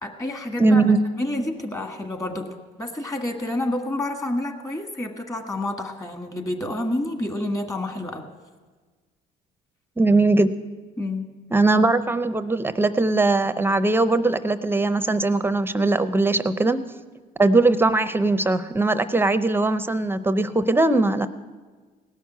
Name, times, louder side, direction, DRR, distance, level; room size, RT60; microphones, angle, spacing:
voice 1, 0.0-0.9 1.1-8.3 11.0-11.3, left 1 dB, 20° left, 5 dB, 1.7 m, -29 dB
voice 2, 0.6-1.0 10.0-10.5 11.5-16.8 17.4-21.3, right 2 dB, 15° right, 11 dB, 0.5 m, -20 dB
18.0 x 6.4 x 9.3 m, 1.4 s
cardioid pair, 110°, 17 cm